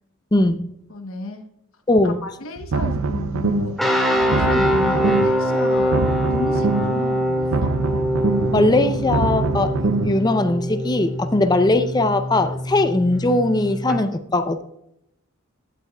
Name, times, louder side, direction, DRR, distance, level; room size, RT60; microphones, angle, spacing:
voice 1, 0.3-0.7 1.9-2.2 8.5-14.6, left 2 dB, 20° left, 9 dB, 0.5 m, -20 dB
voice 2, 0.9-1.5 2.0-3.8 4.1-6.0 6.3-7.7, left 2 dB, 65° left, 5 dB, 1.0 m, -32 dB
sound 1, 2.6-3.8 4.2-5.4 5.8-7.0 7.4-10.2, right 4 dB, 70° right, 0.6 m, -24 dB
sound 2, 3.8-14.0, equal, ahead, 1.8 m, -23 dB
15.5 x 8.4 x 2.3 m, 0.77 s
head